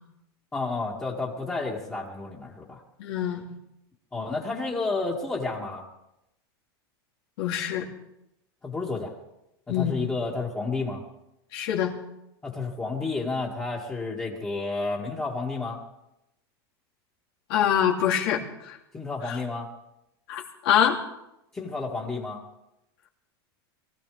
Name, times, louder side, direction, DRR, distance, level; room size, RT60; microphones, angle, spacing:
voice 1, 0.5-2.8 4.1-5.8 8.6-9.1 9.7-11.0 12.4-15.8 18.9-19.7 21.5-22.4, left 3 dB, 15° left, -6 dB, 2.4 m, -31 dB
voice 2, 3.0-3.4 7.4-7.9 9.7-9.9 11.5-11.9 17.5-18.8 19.3-19.4 20.3-21.0, left 9 dB, 70° left, -1 dB, 3.1 m, -25 dB
23.5 x 15.0 x 3.5 m, 0.87 s
supercardioid pair, 130°, 13 cm